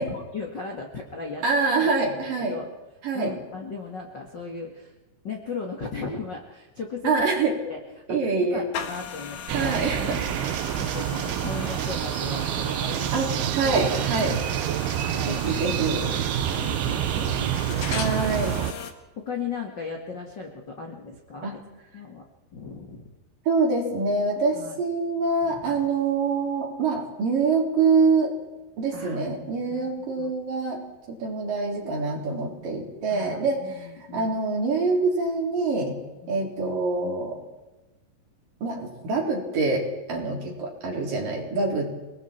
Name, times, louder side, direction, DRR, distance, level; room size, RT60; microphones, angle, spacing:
voice 1, 0.0-1.4 1.8-2.7 3.1-4.9 5.2-7.1 7.6-7.8 8.1-10.3 10.7-14.4 14.6-15.5 16.5-17.8 19.2-21.6 21.9-22.2 22.5-23.1 24.5-24.8 25.5-25.8 28.9-29.2 29.7-29.9 30.2-30.3 33.1-34.4 36.2-36.5, left 4 dB, 45° left, 1 dB, 1.5 m, -37 dB
voice 2, 1.4-2.6 3.0-3.3 7.0-7.5 8.1-8.6 9.5-10.2 13.1-14.4 15.3-16.1 17.9-18.5 21.4-21.6 23.5-28.3 28.8-30.8 31.1-33.9 34.1-36.0 36.3-37.4 38.6-41.9, right 4 dB, 50° right, -1 dB, 5.4 m, -25 dB
sound 1, 8.7-18.9, left 7 dB, 65° left, 3.2 m, -38 dB
sound 2, 9.5-18.7, right 12 dB, 75° right, 2.4 m, -27 dB
29.0 x 20.0 x 4.6 m, 1.1 s
omnidirectional pair, 5.1 m